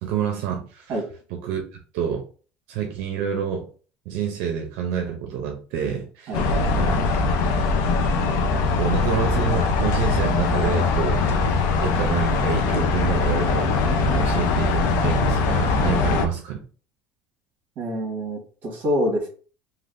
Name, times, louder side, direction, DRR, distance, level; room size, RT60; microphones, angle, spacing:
voice 1, 0.0-1.0 1.3-1.6 1.9-2.2 2.7-3.7 4.1-6.5 6.7-6.9 8.8-11.2 11.8-16.6, right 8 dB, 75° right, 3 dB, 0.5 m, -28 dB
sound 1, 6.3-16.3, left 4 dB, 70° left, 0.5 m, -21 dB
voice 2, 17.8-19.3, equal, 40° right, 0 dB, 1.3 m, -26 dB
3.3 x 2.4 x 2.5 m, 0.39 s
cardioid pair, 165°, 5 cm